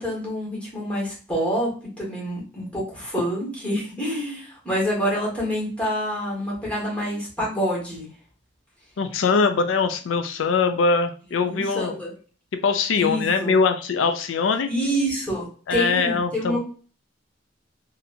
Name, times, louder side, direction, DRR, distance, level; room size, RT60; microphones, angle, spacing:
voice 1, 0.0-1.7 2.0-8.1 11.4-12.1 13.0-13.5 14.7-16.6, equal, 5° left, -5 dB, 1.8 m, -27 dB
voice 2, 9.0-12.0 12.6-14.7 15.7-16.6, left 4 dB, 90° left, 8 dB, 0.4 m, -22 dB
4.2 x 2.7 x 2.6 m, 0.39 s
head